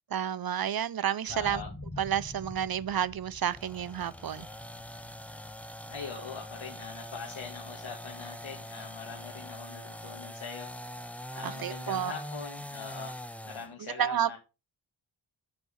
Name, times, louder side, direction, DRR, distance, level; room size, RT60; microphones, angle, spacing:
voice 1, 0.1-1.6 2.0-4.5 11.4-12.1 13.8-14.4, right 9 dB, 50° right, 0.5 m, -30 dB
voice 2, 1.3-1.7 5.9-10.7 11.3-13.2 13.4-14.4, left 6 dB, 75° left, 1.8 m, -42 dB
sound 1, 1.3-9.1 9.6-9.7, left 2 dB, 20° left, 1.5 m, -48 dB
sound 2, 3.5-13.7, equal, 5° left, 0.7 m, -43 dB
7.8 x 4.9 x 5.2 m
wide cardioid pair, 85°, 47 cm